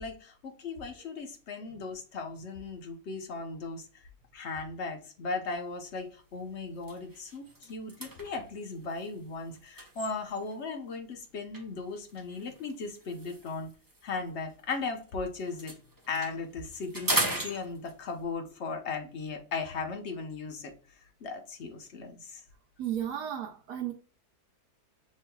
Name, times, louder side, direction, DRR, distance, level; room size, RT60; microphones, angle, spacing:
voice 1, 0.0-3.8 4.3-13.7 14.0-15.8 16.1-20.7 21.2-22.4, left 4 dB, 55° left, 0.9 m, -37 dB
sound 1, 5.6-5.8 6.3-6.4 6.7-10.7 11.5-15.1 15.4-18.2, right 2 dB, 30° right, 0.4 m, -38 dB
voice 2, 22.8-23.9, right 10 dB, 75° right, 1.1 m, -34 dB
6.5 x 3.1 x 2.2 m
omnidirectional pair, 1.7 m